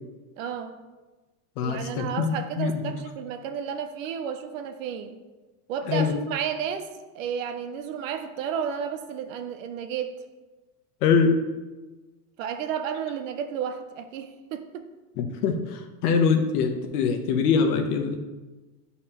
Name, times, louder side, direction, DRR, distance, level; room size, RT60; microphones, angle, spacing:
voice 1, 0.4-0.8 1.6-5.2 5.7-6.9 7.1-10.2 12.4-14.8, right 8 dB, 55° right, 8 dB, 0.6 m, -32 dB
voice 2, 1.6-2.9 5.9-6.1 11.0-11.4 15.2-18.2, left 5 dB, 70° left, 5 dB, 1.0 m, -23 dB
9.9 x 4.2 x 2.9 m, 1.2 s
supercardioid pair, 170°, 47 cm